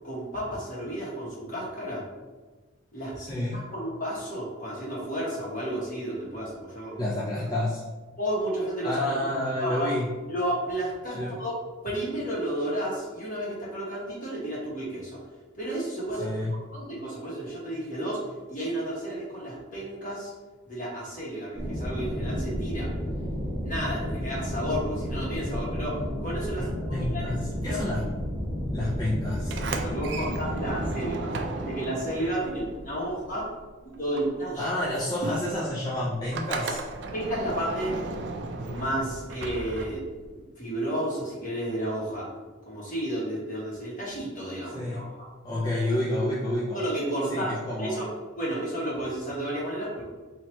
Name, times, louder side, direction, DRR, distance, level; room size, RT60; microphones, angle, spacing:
voice 1, 0.0-2.0 2.9-7.0 8.2-9.2 9.6-9.9 10.3-11.5 11.8-15.2 15.6-18.2 18.5-20.3 20.7-22.9 23.6-27.3 27.7-27.8 29.8-31.3 31.6-33.4 34.0-34.7 37.1-37.9 38.5-40.0 40.3-42.2 42.7-45.0 46.7-47.5 47.8-48.1 48.4-50.0, right 1 dB, 40° left, -6 dB, 1.3 m, -32 dB
voice 2, 3.1-3.6 7.0-7.8 8.8-10.1 11.1-11.4 16.2-16.6 26.5-28.1 28.6-29.6 34.6-36.8 44.7-45.0 45.4-46.8 47.3-48.1, left 1 dB, 20° left, -6 dB, 0.4 m, -29 dB
sound 1, 21.5-30.9, equal, 15° right, 1.1 m, -32 dB
Sliding door, 29.4-33.7 33.9-40.3, right 3 dB, 55° right, 0.4 m, -35 dB
3.1 x 2.8 x 4.3 m, 1.3 s
head